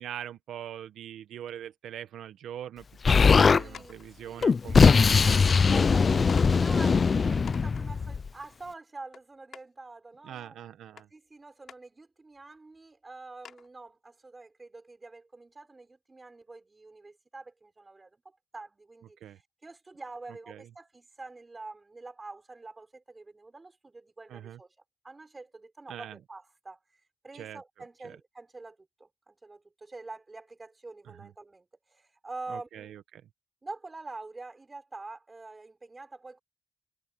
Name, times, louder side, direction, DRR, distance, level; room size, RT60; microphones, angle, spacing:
voice 1, 0.0-5.4 6.1-6.2 10.2-11.1 19.2-19.4 20.5-20.7 24.3-24.6 25.9-26.2 27.3-27.6 28.0-28.2 31.1-31.3 32.5-33.3, right 10 dB, 90° right, 1.4 m, -43 dB
Explosion, 3.0-3.6 4.4-8.3, left 5 dB, 50° left, 0.5 m, -21 dB
voice 2, 3.1-4.0 4.2-4.5 5.6-10.6 11.1-19.3 19.6-24.7 25.0-26.8 27.2-33.0 33.6-36.4, right 3 dB, 30° right, 6.1 m, -46 dB
sound 1, 3.7-4.0 5.1-5.2 5.5-5.6 6.3-6.5 7.0-7.1 7.5-7.8 9.1-9.2 9.5-9.6 11.0-11.1 11.7-11.8 12.4-12.5 12.8-12.9 13.4-13.7, left 8 dB, 70° left, 7.7 m, -46 dB
cardioid pair, 70°, 0 cm